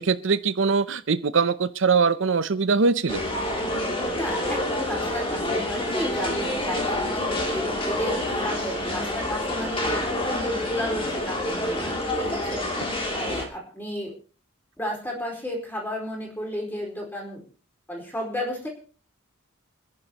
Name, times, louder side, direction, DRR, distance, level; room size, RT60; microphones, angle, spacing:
voice 1, 0.0-3.2, right 5 dB, 65° right, 13 dB, 0.6 m, -22 dB
sound 1, 3.1-13.4, left 1 dB, 25° left, 2.8 m, -28 dB
voice 2, 4.1-12.7 13.1-14.1 14.8-17.4 17.9-18.7, equal, 10° left, -2 dB, 4.7 m, -32 dB
28.5 x 11.0 x 3.0 m, 0.39 s
head